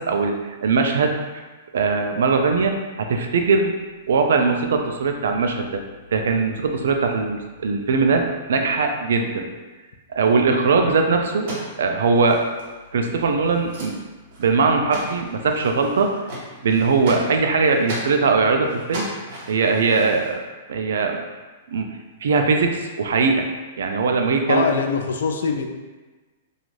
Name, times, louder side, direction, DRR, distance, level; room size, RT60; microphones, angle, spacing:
voice 1, 0.0-1.4 1.7-3.7 4.1-5.8 6.1-9.5 10.1-11.5 11.8-12.4 12.9-14.0 14.4-16.1 16.6-19.1 19.5-20.4 20.7-21.2 21.7-21.9 22.2-23.5 23.8-24.7, right 4 dB, 80° right, 4 dB, 0.4 m, -20 dB
sound 1, 11.3-12.9 13.1-13.2 13.4-14.0 14.3-14.6 14.9-18.1 18.6-20.3, equal, 55° right, 1.0 m, -35 dB
voice 2, 24.5-25.7, left 5 dB, 80° left, 5 dB, 0.3 m, -22 dB
2.5 x 2.3 x 3.1 m, 1.3 s
hypercardioid pair, 140°, 0 cm